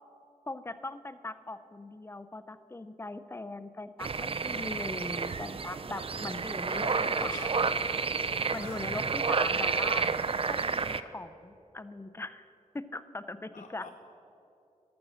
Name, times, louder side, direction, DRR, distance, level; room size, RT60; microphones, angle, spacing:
voice 1, 0.5-6.9 7.2-7.5 8.5-12.5 12.7-13.9, left 2 dB, 20° left, 12 dB, 0.4 m, -40 dB
sound 1, 4.0-11.0, right 5 dB, 45° right, 0.4 m, -30 dB
voice 2, 6.7-7.8 8.6-9.1 13.5-13.9, left 4 dB, 75° left, 1 dB, 0.7 m, -45 dB
13.0 x 6.2 x 6.3 m, 2.8 s
wide cardioid pair, 85°, 14 cm